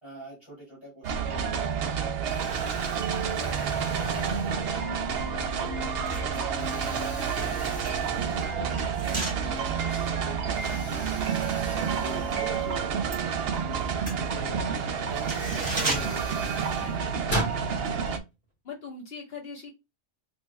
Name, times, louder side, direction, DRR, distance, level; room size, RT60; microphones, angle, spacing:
voice 1, 0.0-5.9 8.1-11.1 11.5-16.8, right 2 dB, 25° left, -6 dB, 2.6 m, -46 dB
sound 1, 1.0-18.2, right 6 dB, 65° right, 0.8 m, -29 dB
Explosion, 1.5-1.9 2.2-5.1 5.7-5.8 6.6-8.8 9.2-9.3 10.5-13.1 14.6-14.7 15.1-17.6, right 1 dB, 45° left, 2.3 m, -38 dB
sound 2, 5.2-5.4 5.8-12.4 12.7-17.3 17.6-17.8, right 2 dB, 20° right, 1.1 m, -38 dB
voice 2, 16.7-17.4 17.7-18.2 18.6-19.8, left 5 dB, 60° left, -1 dB, 1.4 m, -42 dB
4.5 x 2.9 x 2.2 m, 0.25 s
omnidirectional pair, 1.2 m